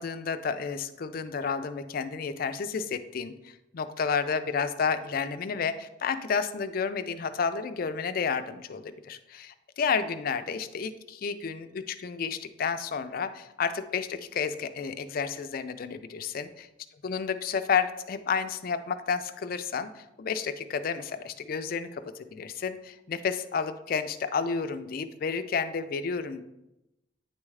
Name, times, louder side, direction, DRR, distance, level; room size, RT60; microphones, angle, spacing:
voice 1, 0.0-3.3 3.7-16.7 17.0-26.4, left 6 dB, 50° left, 10 dB, 0.4 m, -31 dB
9.0 x 3.6 x 3.2 m, 0.92 s
head